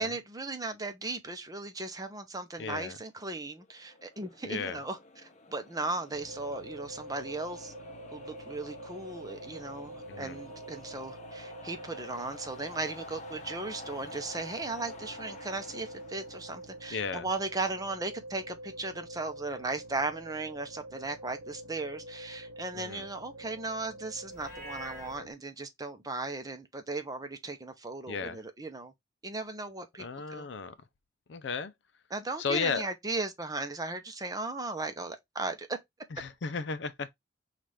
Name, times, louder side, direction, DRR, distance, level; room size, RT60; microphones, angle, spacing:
voice 1, 0.0-7.7 8.1-28.9 29.2-30.5 32.1-35.8, right 3 dB, 20° right, 0.7 m, -37 dB
voice 2, 2.6-3.0 4.4-4.8 10.1-10.4 16.9-17.3 22.7-23.1 28.1-28.4 30.0-30.8 31.3-31.7 32.4-32.9 36.1-37.1, left 5 dB, 70° left, 0.5 m, -34 dB
sound 1, 3.4-17.7, left 2 dB, 40° left, 0.8 m, -50 dB
sound 2, 6.1-25.3, right 1 dB, 80° right, 0.7 m, -47 dB
Livestock farm animals working animals, 24.3-25.2, equal, 15° left, 1.7 m, -44 dB
5.8 x 2.5 x 3.3 m
head